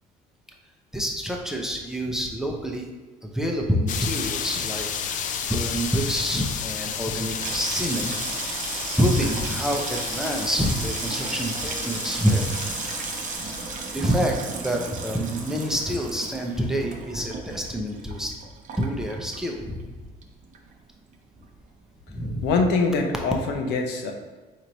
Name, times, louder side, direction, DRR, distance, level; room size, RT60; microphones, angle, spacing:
voice 1, 0.9-2.9 3.2-8.2 9.0-12.5 13.9-18.3 18.8-19.9 22.1-22.5, equal, 5° right, 0 dB, 0.6 m, -27 dB
sound 1, 3.9-13.9, left 7 dB, 50° left, 0.4 m, -32 dB
Water tap faucet / Sink (filling or washing), 7.1-19.9 20.2-20.9 21.1-21.5, right 4 dB, 50° right, 0.7 m, -34 dB
voice 2, 22.4-24.1, left 4 dB, 85° left, 3 dB, 0.7 m, -23 dB
4.4 x 3.1 x 3.9 m, 1.3 s
cardioid pair, 110°, 17 cm